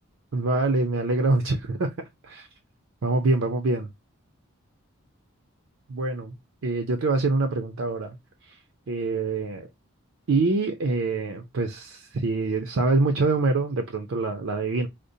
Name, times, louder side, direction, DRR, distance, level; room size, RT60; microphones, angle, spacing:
voice 1, 0.3-1.9 2.2-2.5 3.0-3.9 5.9-6.3 6.6-8.2 8.4-8.6 8.9-9.7 10.3-14.9, right 3 dB, 65° right, 0.5 m, -25 dB
5.0 x 2.0 x 2.6 m
head